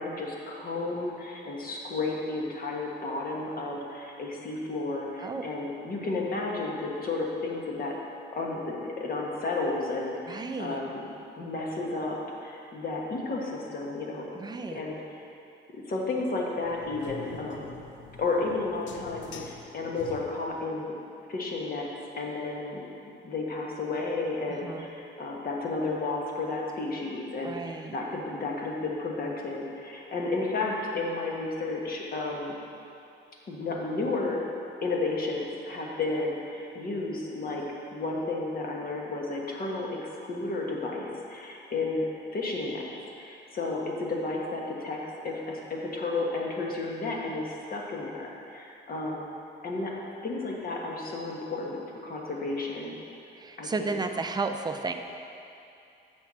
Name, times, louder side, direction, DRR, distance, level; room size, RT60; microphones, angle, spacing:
voice 1, 0.0-8.0 8.3-11.0 11.4-12.2 12.4-14.3 14.7-15.0 15.7-17.7 18.2-21.0 21.3-21.9 22.1-22.8 23.2-32.5 33.5-34.4 34.8-37.6 37.9-42.1 42.3-42.8 43.2-49.3 49.6-49.9 50.2-52.9 53.6-53.9, left 3 dB, 50° left, -1 dB, 1.3 m, -32 dB
voice 2, 10.3-10.8 14.3-14.8 24.5-24.9 27.4-28.0 53.4-54.9, right 4 dB, 20° right, 6 dB, 0.5 m, -33 dB
sound 1, 16.6-20.7, left 5 dB, 70° left, 0.6 m, -46 dB
7.1 x 4.4 x 6.1 m, 2.6 s
cardioid pair, 90°, 20 cm